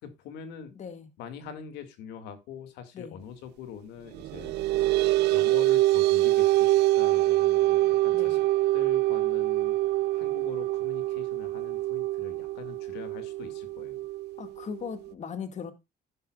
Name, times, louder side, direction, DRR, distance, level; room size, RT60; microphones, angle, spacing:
voice 1, 0.0-0.7 1.2-4.5 5.3-8.4 8.7-9.8 10.1-14.0, left 7 dB, 90° left, 2.3 m, -43 dB
voice 2, 0.8-1.1 2.9-3.2 8.1-8.4 14.4-15.7, left 6 dB, 45° left, 2.0 m, -38 dB
sound 1, 4.1-15.1, right 17 dB, 80° right, 0.7 m, -25 dB
11.5 x 11.0 x 2.4 m
cardioid pair, 110°, 17 cm